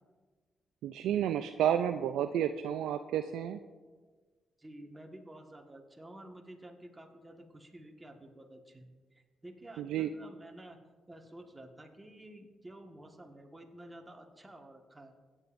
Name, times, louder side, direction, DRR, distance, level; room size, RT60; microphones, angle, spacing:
voice 1, 0.8-3.6 9.8-10.1, right 10 dB, 85° right, 8 dB, 0.3 m, -31 dB
voice 2, 4.6-10.8 11.1-15.1, right 1 dB, 20° right, 2 dB, 1.5 m, -51 dB
16.5 x 8.9 x 2.6 m, 1.4 s
cardioid pair, 70°, 0 cm